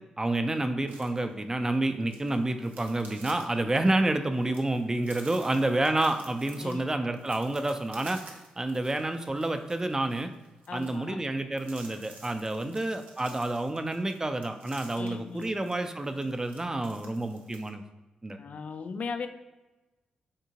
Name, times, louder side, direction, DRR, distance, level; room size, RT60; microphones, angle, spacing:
voice 1, 0.2-8.2 8.6-10.3 10.7-17.8 18.2-18.4, right 2 dB, 20° right, 8 dB, 0.4 m, -29 dB
sound 1, 0.9-17.7, right 3 dB, 75° right, 0.6 m, -52 dB
voice 2, 10.7-11.2 12.6-12.8 15.0-15.5 18.4-19.3, left 5 dB, 55° left, 9 dB, 0.3 m, -37 dB
3.6 x 2.8 x 2.8 m, 1.1 s
supercardioid pair, 50°, 3 cm